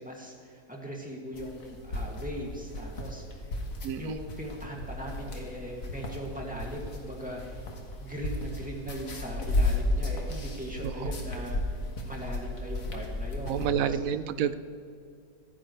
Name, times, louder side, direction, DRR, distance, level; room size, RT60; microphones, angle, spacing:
voice 1, 0.0-3.5 4.0-7.6 8.0-11.6 12.0-14.0, equal, 5° right, -2 dB, 2.3 m, -39 dB
sound 1, 1.3-13.7, left 1 dB, 60° left, 2.0 m, -34 dB
voice 2, 3.8-4.2 10.8-11.1 13.5-14.5, right 8 dB, 70° right, 13 dB, 1.0 m, -29 dB
27.0 x 9.8 x 3.3 m, 2.4 s
omnidirectional pair, 1.6 m